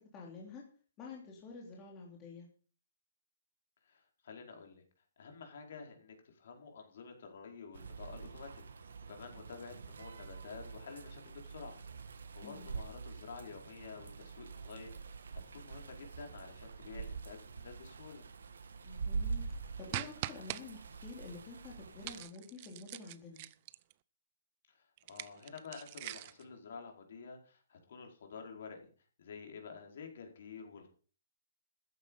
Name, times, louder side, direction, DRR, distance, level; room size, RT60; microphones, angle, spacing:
voice 1, 0.1-0.6 1.0-2.5 12.4-12.7 18.8-19.4 19.8-23.4, left 4 dB, 20° left, -2 dB, 3.2 m, -49 dB
voice 2, 3.8-4.8 5.2-8.5 8.7-18.3 24.7-28.9 29.2-30.9, left 5 dB, 55° left, 3 dB, 4.6 m, -50 dB
sound 1, 7.7-22.2, right 5 dB, 90° right, 2.1 m, -45 dB
sound 2, 19.9-20.6 22.0-23.9 25.0-26.4, right 16 dB, 30° right, 0.6 m, -42 dB
14.0 x 9.6 x 5.5 m, 0.41 s
hypercardioid pair, 170°, 0 cm